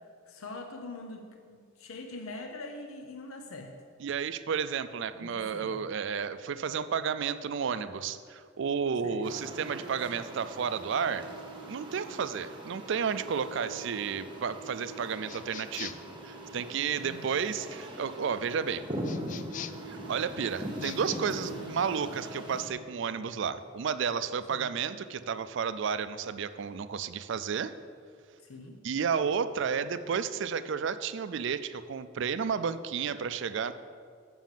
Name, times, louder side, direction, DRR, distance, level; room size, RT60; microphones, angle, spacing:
voice 1, 0.3-3.7 5.1-5.8 9.0-9.2 17.0-17.3 21.5-21.9 24.5-24.7 28.4-28.8, left 2 dB, 85° left, 4 dB, 0.7 m, -43 dB
voice 2, 4.0-11.3 11.7-18.8 19.9-27.7 28.8-33.7, right 6 dB, 60° right, 13 dB, 0.4 m, -32 dB
sound 1, 9.2-22.7, right 1 dB, 25° right, 1.1 m, -41 dB
sound 2, 15.3-16.1 19.0-19.9 20.7-21.2, left 9 dB, 40° left, 0.3 m, -42 dB
7.4 x 6.2 x 7.3 m, 2.2 s
head